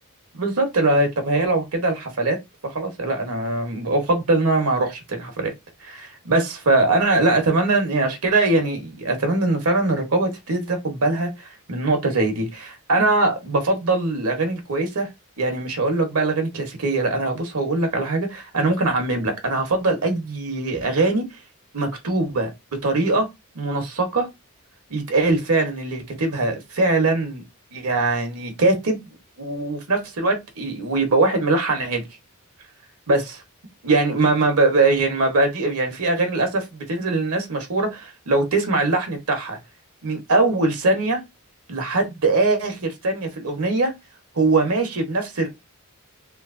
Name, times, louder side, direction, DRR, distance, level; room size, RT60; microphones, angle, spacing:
voice 1, 0.3-2.4 2.6-5.5 5.8-15.1 15.4-21.3 21.7-22.5 22.8-23.3 23.5-24.3 24.9-27.4 27.7-29.0 29.4-32.0 33.1-33.4 33.8-39.6 40.0-41.2 41.7-43.9 44.3-45.5, right 2 dB, 70° right, 1.0 m, -22 dB
3.1 x 2.7 x 2.5 m
head